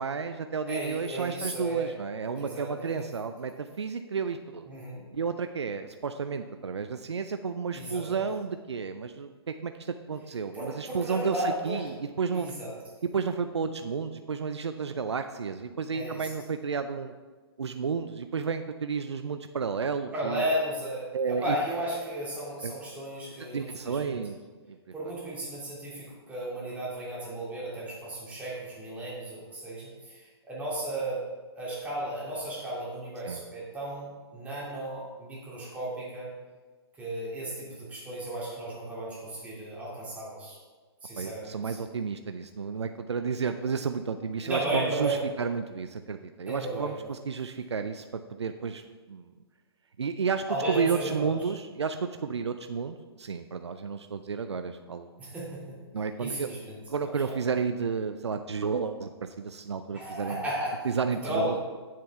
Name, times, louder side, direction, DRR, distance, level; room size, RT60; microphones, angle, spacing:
voice 1, 0.0-4.7 5.1-12.6 13.0-17.1 17.6-20.4 21.1-21.6 22.6-22.7 23.5-24.4 24.7-24.8 33.2-33.4 41.2-48.0 48.3-49.3 50.0-55.1 55.9-56.5 56.9-60.4 60.8-61.5, right 5 dB, 85° right, 8 dB, 0.5 m, -32 dB
voice 2, 0.6-1.9 2.4-3.1 4.7-5.0 7.7-8.2 10.5-11.9 12.3-12.7 15.9-16.3 20.1-24.2 24.9-31.2 31.5-36.3 37.0-40.6 41.0-41.8 44.4-45.2 46.5-46.9 50.5-51.4 55.2-55.8 56.2-56.7 57.0-57.4 59.9-60.8 61.2-61.6, right 1 dB, 10° right, -7 dB, 2.8 m, -34 dB
9.2 x 7.4 x 3.6 m, 1.4 s
hypercardioid pair, 135°, 14 cm